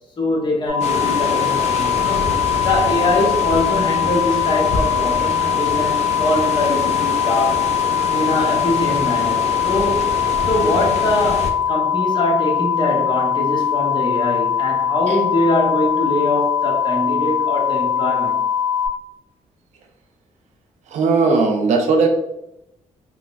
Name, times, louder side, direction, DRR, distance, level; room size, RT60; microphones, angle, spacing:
voice 1, 0.2-7.6 8.1-10.1 10.5-18.5, left 1 dB, 40° left, -1 dB, 0.9 m, -23 dB
sound 1, 0.7-18.9, left 8 dB, 20° right, 0.9 m, -21 dB
sound 2, 0.8-11.5, left 4 dB, 65° left, 0.4 m, -27 dB
voice 2, 20.9-22.1, right 4 dB, 75° right, 4 dB, 0.5 m, -17 dB
3.5 x 2.0 x 2.4 m, 0.86 s
cardioid pair, 90°, 12 cm